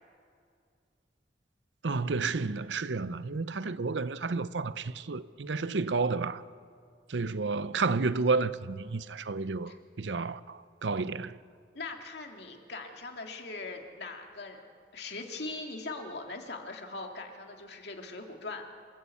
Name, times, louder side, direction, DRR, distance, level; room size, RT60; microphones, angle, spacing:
voice 1, 1.8-6.4 7.1-9.7 10.0-11.4, right 4 dB, 85° right, 0.7 m, -31 dB
voice 2, 11.7-14.6 14.9-18.6, left 3 dB, 65° left, 2.5 m, -41 dB
28.0 x 14.0 x 8.4 m
head